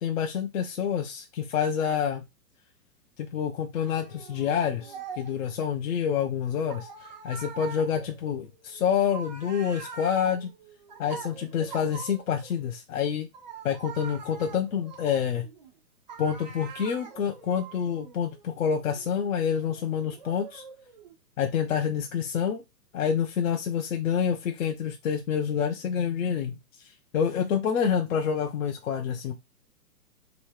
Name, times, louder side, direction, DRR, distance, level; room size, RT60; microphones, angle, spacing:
voice 1, 0.0-2.2 3.2-10.5 11.0-13.3 13.6-15.5 16.2-20.6 21.4-22.6 22.9-26.5 27.1-29.3, left 8 dB, 55° left, 0.7 m, -27 dB
Content warning, 3.7-5.5 6.7-12.6 13.3-15.7 16.1-21.1, right 6 dB, 30° right, 0.4 m, -44 dB
3.4 x 3.1 x 3.2 m
hypercardioid pair, 140°, 48 cm